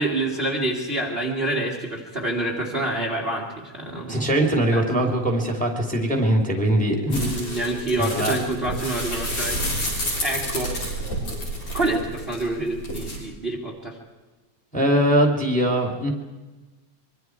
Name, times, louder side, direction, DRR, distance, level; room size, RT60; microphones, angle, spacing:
voice 1, 0.0-3.5 3.7-4.3 4.7-4.9 7.2-9.8 10.2-10.7 11.7-14.0, right 2 dB, 25° right, -1 dB, 1.9 m, -27 dB
voice 2, 4.1-7.4 8.0-8.3 14.7-16.1, right 1 dB, 5° left, 2 dB, 2.4 m, -21 dB
sound 1, 7.1-13.2, equal, 75° left, 7.8 m, -29 dB
25.0 x 23.0 x 4.7 m, 1.2 s
omnidirectional pair, 3.3 m